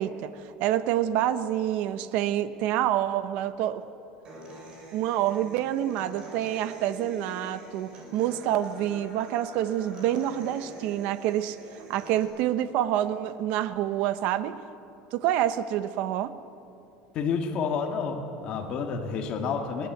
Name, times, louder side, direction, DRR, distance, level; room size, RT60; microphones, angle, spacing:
voice 1, 0.0-3.8 4.9-11.6 11.9-14.6 15.1-16.4, right 12 dB, 55° right, 12 dB, 0.9 m, -27 dB
Human voice / Acoustic guitar, 4.2-12.2, right 1 dB, 30° right, 6.0 m, -45 dB
voice 2, 17.1-19.9, left 5 dB, 35° left, 3 dB, 1.8 m, -29 dB
21.5 x 19.0 x 8.0 m, 2.7 s
cardioid pair, 165°, 3 cm